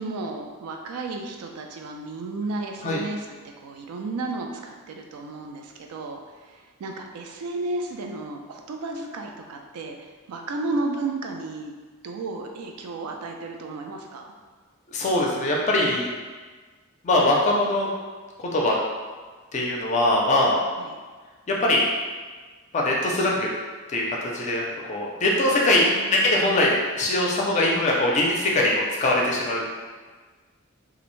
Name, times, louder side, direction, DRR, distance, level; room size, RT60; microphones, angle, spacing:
voice 1, 0.0-3.2 3.6-10.0 10.3-11.7 12.0-14.2 20.8-20.9 25.9-26.7, right 2 dB, 80° right, 2 dB, 0.3 m, -33 dB
voice 2, 14.9-16.1 17.0-17.9 18.4-18.7 19.5-20.6 21.5-21.8 22.7-23.5 23.9-24.0 24.3-24.6 24.9-29.7, left 1 dB, 30° left, -2 dB, 0.4 m, -22 dB
2.4 x 2.0 x 3.0 m, 1.4 s
head